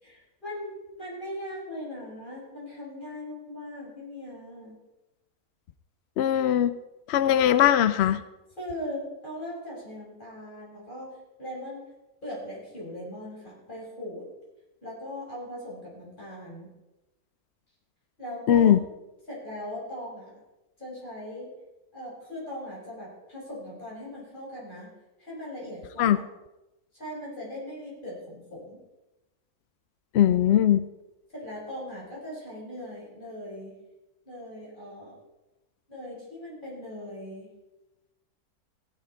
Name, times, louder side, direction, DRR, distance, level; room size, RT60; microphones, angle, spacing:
voice 1, 0.0-0.7 1.0-4.8 8.6-11.8 12.2-14.2 14.8-16.7 18.2-18.7 19.3-20.3 20.8-21.5 21.9-24.9 25.2-26.3 26.9-28.8 31.3-33.7 34.3-35.1 35.9-37.5, left 1 dB, 30° left, -6 dB, 6.0 m, -39 dB
voice 2, 6.2-6.8 7.1-8.2 18.5-18.8 26.0-26.2 30.1-30.9, left 10 dB, 70° left, 13 dB, 0.6 m, -20 dB
15.5 x 10.5 x 4.5 m, 1.0 s
omnidirectional pair, 1.6 m